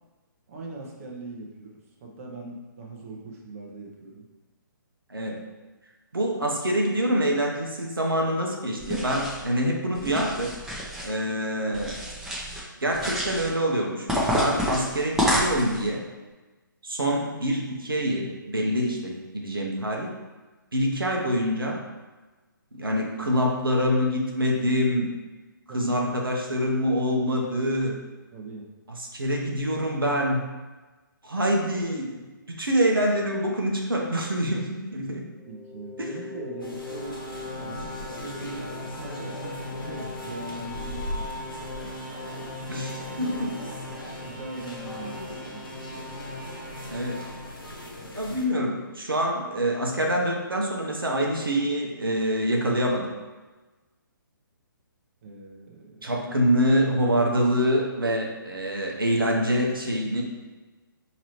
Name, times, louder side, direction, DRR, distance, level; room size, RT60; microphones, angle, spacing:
voice 1, 0.5-4.3 25.7-26.1 28.3-28.7 35.4-37.2 37.6-41.3 44.2-45.6 55.2-56.5, right 2 dB, 40° right, -1 dB, 0.7 m, -41 dB
voice 2, 6.1-10.5 11.0-11.9 12.8-14.1 14.3-16.0 16.8-20.1 20.7-21.8 22.7-25.1 25.7-28.0 29.0-30.5 31.2-32.2 32.5-35.2 36.0-36.1 42.7-43.6 46.9-47.2 48.2-53.1 56.0-60.2, equal, 85° right, -1 dB, 0.8 m, -25 dB
sound 1, 8.8-9.5 9.9-11.1 11.7-12.6 12.9-13.5 14.1-15.9, equal, 5° right, 0.6 m, -28 dB
sound 2, 35.3-48.3, left 2 dB, 15° left, 1.0 m, -40 dB
sound 3, 36.6-48.5, left 1 dB, 80° left, 0.9 m, -39 dB
4.7 x 2.9 x 3.0 m, 1.2 s
figure-of-eight pair, 135°, 11 cm